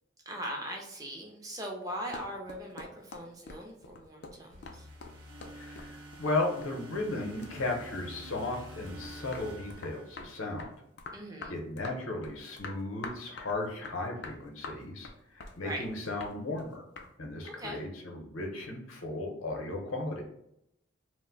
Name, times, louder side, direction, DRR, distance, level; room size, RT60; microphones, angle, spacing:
voice 1, 0.3-4.9 11.1-11.5 15.6-15.8 17.4-17.8, equal, 15° right, 0 dB, 0.5 m, -40 dB
sound 1, 1.8-7.2 7.4-8.5 8.9-17.1, left 3 dB, 55° left, 0.4 m, -46 dB
sound 2, 4.5-10.7, right 1 dB, 75° right, 0.7 m, -48 dB
voice 2, 5.5-10.7 11.5-15.1 15.3-16.8 17.2-20.2, left 2 dB, 80° left, 1 dB, 0.7 m, -35 dB
2.5 x 2.1 x 3.8 m, 0.79 s
head